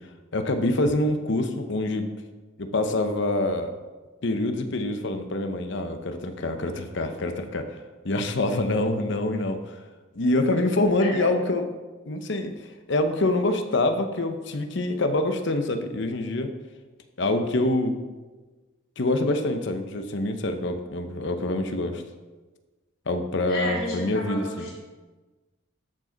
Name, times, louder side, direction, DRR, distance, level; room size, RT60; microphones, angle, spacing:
voice 1, 0.3-2.1 2.6-3.7 4.2-9.8 10.1-11.7 12.1-16.5 17.2-18.0 19.0-22.0 23.1-24.7, left 2 dB, 60° left, 7 dB, 0.8 m, -26 dB
voice 2, 23.5-24.7, left 1 dB, 85° left, -6 dB, 3.2 m, -32 dB
13.0 x 5.1 x 4.0 m, 1.3 s
head